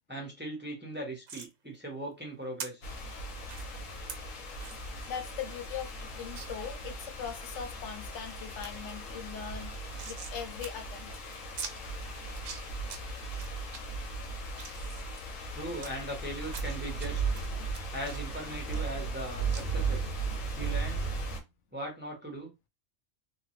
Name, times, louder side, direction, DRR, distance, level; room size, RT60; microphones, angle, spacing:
voice 1, 0.1-2.8 15.5-17.4 17.9-20.1 20.6-21.0 21.7-22.5, right 1 dB, 10° right, 0.7 m, -39 dB
sound 1, 1.3-1.5 2.6-2.7 3.5-3.6 4.1-4.2 4.6-4.8 5.2-5.3 5.5-5.6 6.4-6.5 7.0-7.5 8.0-8.3 8.6-8.7 9.0-10.4 10.6-10.7 11.0-11.1 11.6-11.7 12.3-13.0 13.4-13.8 14.3-15.9 16.5-17.1 17.3-19.2 19.5-19.6, right 6 dB, 75° right, 1.0 m, -43 dB
sound 2, 2.8-21.4, right 3 dB, 90° left, 1.2 m, -37 dB
voice 2, 5.1-11.2 14.8-14.9, left 8 dB, 70° left, 0.9 m, -41 dB
3.0 x 2.2 x 3.1 m
omnidirectional pair, 1.3 m